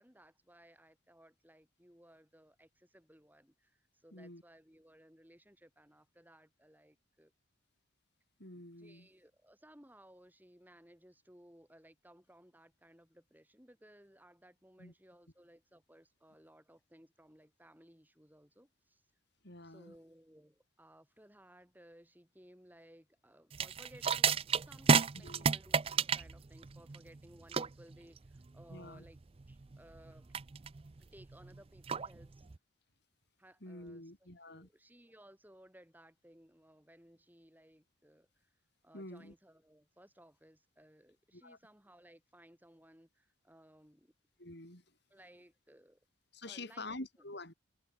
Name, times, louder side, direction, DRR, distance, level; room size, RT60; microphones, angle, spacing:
voice 1, 0.0-7.3 8.8-19.0 19.6-29.2 29.5-30.3 31.0-32.4 33.4-38.5 38.8-44.1 45.1-46.0 46.4-47.0, right 1 dB, 10° right, 6.6 m, -61 dB
voice 2, 4.1-4.4 8.4-9.1 14.8-14.9 19.4-19.9 25.2-25.5 28.7-29.0 33.6-34.7 38.9-39.3 41.3-41.6 44.4-44.8 46.3-47.5, left 2 dB, 55° left, 6.1 m, -47 dB
sound 1, 23.5-32.6, right 6 dB, 30° right, 0.4 m, -33 dB
head